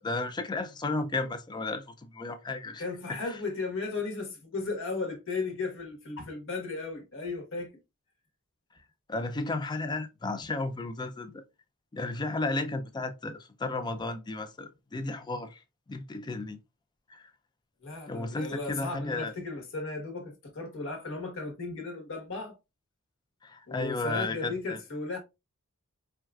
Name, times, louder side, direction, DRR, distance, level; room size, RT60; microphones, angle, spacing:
voice 1, 0.0-2.8 3.3-3.4 9.1-11.4 11.9-15.6 15.9-16.6 17.1-17.3 18.1-19.3 23.4-24.8, left 2 dB, 20° left, 0.4 m, -33 dB
voice 2, 2.8-7.7 17.8-22.6 23.7-25.2, left 3 dB, 60° left, 1.1 m, -35 dB
4.5 x 2.3 x 2.3 m
head